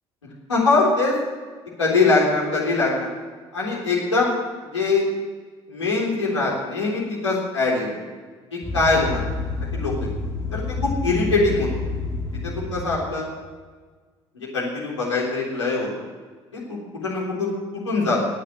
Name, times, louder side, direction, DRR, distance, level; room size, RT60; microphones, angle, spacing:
voice 1, 0.5-1.2 1.8-3.1 3.5-4.3 4.7-5.1 5.7-8.0 8.5-9.2 9.7-10.1 10.5-11.7 12.4-13.3 14.3-15.9 16.5-18.2, left 3 dB, 85° left, -4 dB, 3.7 m, -22 dB
sound 1, 8.6-13.2, left 3 dB, 20° left, 2.6 m, -29 dB
17.5 x 10.0 x 6.4 m, 1.5 s
figure-of-eight pair, 55°, 15 cm